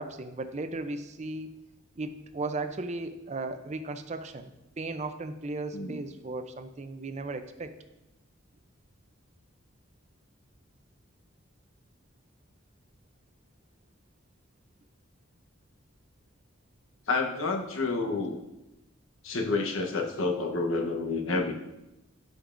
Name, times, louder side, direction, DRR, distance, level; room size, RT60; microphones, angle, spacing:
voice 1, 0.0-1.5 2.0-4.5 4.8-7.7, right 2 dB, 35° right, 9 dB, 0.5 m, -36 dB
voice 2, 17.1-18.4 19.2-21.5, left 3 dB, 85° left, 3 dB, 1.0 m, -29 dB
13.5 x 5.2 x 2.5 m, 0.95 s
head